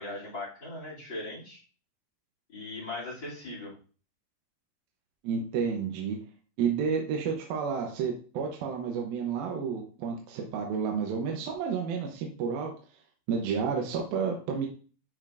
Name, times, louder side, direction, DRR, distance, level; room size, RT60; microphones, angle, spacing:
voice 1, 0.0-1.6 2.5-3.7, left 2 dB, 30° left, -4 dB, 3.1 m, -39 dB
voice 2, 5.2-6.2 6.6-12.7 13.3-14.7, right 6 dB, 75° right, 1 dB, 2.6 m, -30 dB
11.0 x 5.1 x 2.6 m, 0.39 s
omnidirectional pair, 4.7 m